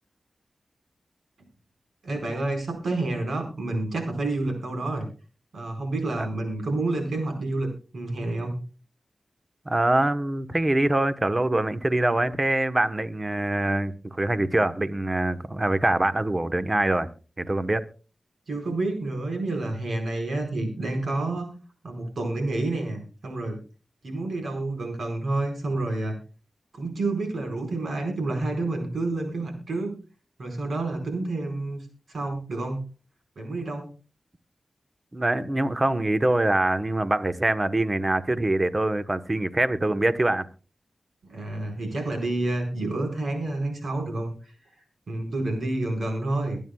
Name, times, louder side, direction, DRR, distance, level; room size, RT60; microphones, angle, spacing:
voice 1, 2.0-5.1 5.5-7.7 7.9-8.6 18.5-21.5 21.8-23.6 24.0-26.1 26.7-29.9 30.4-32.8 33.4-33.9 41.2-44.5 45.1-46.6, right 2 dB, 80° right, 4.7 m, -29 dB
voice 2, 9.6-17.1 17.4-17.8 35.1-40.5, right 1 dB, 30° right, 1.1 m, -24 dB
24.0 x 9.3 x 2.3 m
cardioid pair, 50°, 0 cm